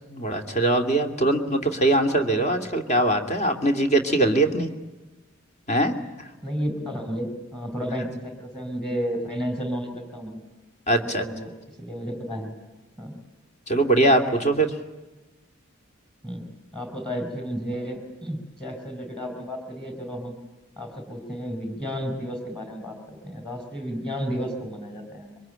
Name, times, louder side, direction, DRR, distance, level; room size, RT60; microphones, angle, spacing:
voice 1, 0.1-4.7 5.7-5.9 10.9-11.2 13.7-14.7, right 1 dB, 35° left, 5 dB, 2.6 m, -21 dB
voice 2, 6.4-10.4 11.0-12.5 13.0-13.2 16.2-20.3 20.8-25.4, equal, 5° left, 6 dB, 4.4 m, -32 dB
27.0 x 24.5 x 9.0 m, 1.1 s
head